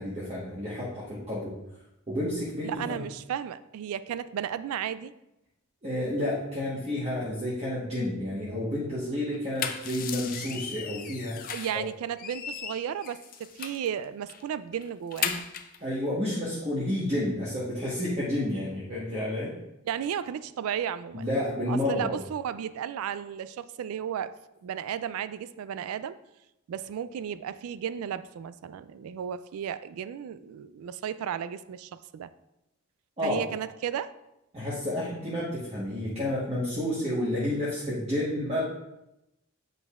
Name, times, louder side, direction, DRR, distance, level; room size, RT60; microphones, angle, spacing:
voice 1, 0.0-1.5 2.1-3.0 5.8-11.5 15.8-19.5 21.1-22.1 33.2-33.4 34.5-38.6, left 1 dB, 30° right, -8 dB, 1.2 m, -30 dB
voice 2, 2.6-5.1 11.5-15.4 19.8-21.3 21.7-24.4 24.6-26.2 26.7-32.3 33.2-34.1, right 9 dB, 85° right, 16 dB, 0.3 m, -34 dB
sound 1, 9.3-11.8 12.2-13.9 14.3-14.4 14.7-15.8, left 8 dB, 40° left, 0.4 m, -36 dB
8.4 x 5.3 x 2.4 m, 0.89 s
head